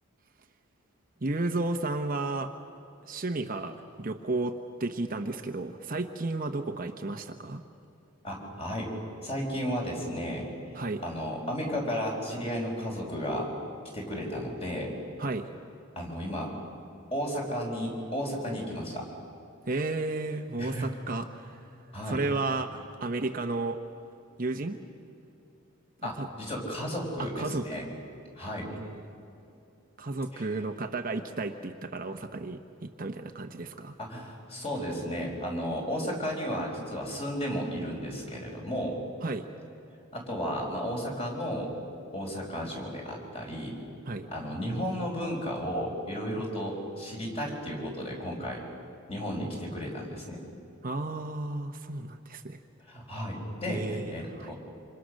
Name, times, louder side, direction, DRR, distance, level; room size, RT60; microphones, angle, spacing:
voice 1, 1.2-2.5 3.1-7.6 10.7-11.0 15.2-15.5 19.7-21.6 22.0-23.8 24.4-24.8 26.0-26.3 27.2-27.8 28.7-29.1 30.0-33.9 39.2-39.5 44.1-44.3 46.3-46.4 50.8-52.6 53.7-54.5, right 2 dB, 40° right, 5 dB, 0.9 m, -33 dB
voice 2, 8.2-8.9 9.2-10.4 11.0-13.5 13.9-14.9 16.0-16.5 17.1-19.1 20.6-20.8 21.9-22.2 26.0-27.9 28.4-28.7 30.3-30.5 34.0-39.0 40.1-41.7 42.1-43.8 44.3-48.6 49.1-50.4 52.9-54.6, equal, 25° left, 0 dB, 5.2 m, -33 dB
27.0 x 26.5 x 6.5 m, 2.7 s
head